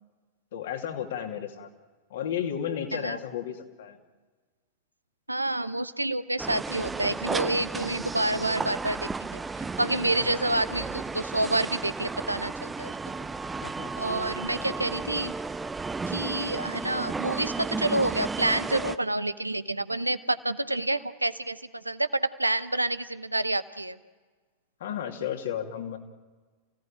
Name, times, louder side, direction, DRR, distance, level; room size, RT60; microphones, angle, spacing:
voice 1, 0.5-1.7 2.1-4.0 10.2-10.5 13.6-14.8 24.8-26.0, left 9 dB, 60° left, 4 dB, 2.7 m, -34 dB
voice 2, 5.3-9.4 9.8-12.9 14.0-15.3 16.1-21.6 21.8-24.0, right 2 dB, 85° right, 13 dB, 1.0 m, -28 dB
sound 1, 6.4-19.0, right 4 dB, 10° right, 0.7 m, -34 dB
28.5 x 17.5 x 8.9 m, 1.4 s
figure-of-eight pair, 90°, 0 cm